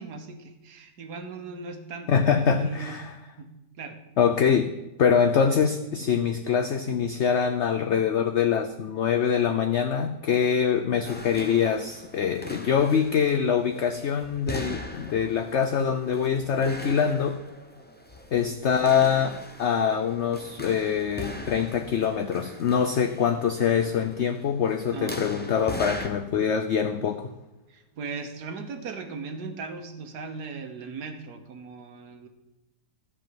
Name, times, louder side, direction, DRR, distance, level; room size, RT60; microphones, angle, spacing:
voice 1, 0.0-3.5 3.7-4.0 6.0-6.1 18.5-18.6 24.9-25.2 27.7-32.3, right 4 dB, 70° right, 6 dB, 1.7 m, -38 dB
voice 2, 2.1-3.1 4.2-4.7 5.0-17.4 18.3-27.3, left 7 dB, 60° left, 7 dB, 0.7 m, -24 dB
sound 1, 11.0-26.1, left 1 dB, 10° left, 0.7 m, -40 dB
13.5 x 4.9 x 7.6 m, 0.98 s
omnidirectional pair, 1.8 m